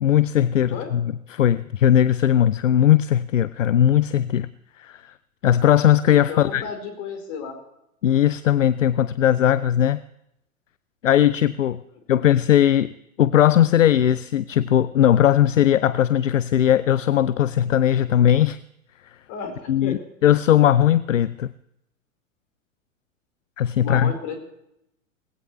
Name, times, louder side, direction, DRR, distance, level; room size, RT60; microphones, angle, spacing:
voice 1, 0.0-4.5 4.8-5.1 5.4-6.6 8.0-10.0 11.0-11.8 12.1-12.9 13.2-18.6 19.7-21.5 23.6-24.1, left 11 dB, 70° left, 17 dB, 0.6 m, -18 dB
voice 2, 6.3-7.6 12.2-12.3 19.3-20.0 23.8-24.4, left 6 dB, 40° left, 5 dB, 4.3 m, -33 dB
19.5 x 16.5 x 3.1 m, 0.80 s
figure-of-eight pair, 95°, 40 cm